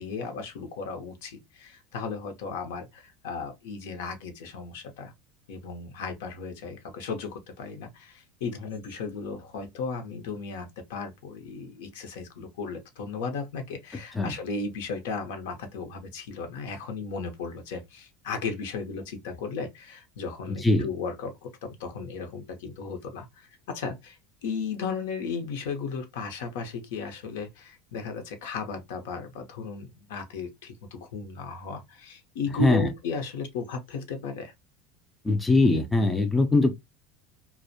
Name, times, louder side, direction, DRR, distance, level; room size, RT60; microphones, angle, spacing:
voice 1, 0.0-5.1 5.5-34.5, left 4 dB, 85° left, 0.7 m, -35 dB
voice 2, 20.5-20.9 32.6-32.9 35.2-36.8, left 2 dB, 10° left, 0.3 m, -22 dB
2.5 x 2.0 x 2.6 m
supercardioid pair, 150°, 0 cm